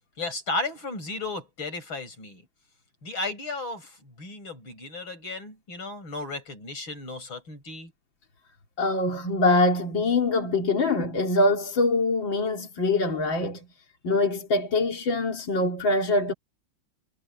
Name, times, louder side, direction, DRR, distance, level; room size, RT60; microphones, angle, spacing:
voice 1, 0.2-2.4 3.0-7.9, left 2 dB, 90° left, 8.3 m, -34 dB
voice 2, 8.8-13.7 14.0-16.3, left 2 dB, 70° left, 3.4 m, -24 dB
omnidirectional pair, 2.1 m